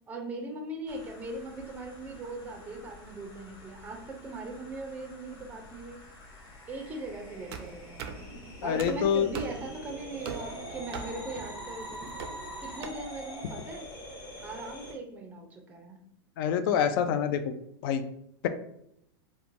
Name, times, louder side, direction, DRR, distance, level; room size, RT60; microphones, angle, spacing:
voice 1, 0.1-6.0 6.7-8.2 8.6-12.1 12.6-13.9 14.4-16.0, right 2 dB, 10° right, 2 dB, 0.4 m, -40 dB
sound 1, 0.9-14.9, left 1 dB, 35° left, 0.9 m, -46 dB
sound 2, 7.5-12.8, right 6 dB, 70° right, 0.4 m, -42 dB
voice 2, 8.6-9.3 16.4-17.5 17.8-18.0, left 8 dB, 60° left, 9 dB, 0.4 m, -26 dB
3.0 x 2.2 x 2.5 m, 0.76 s
supercardioid pair, 135°, 13 cm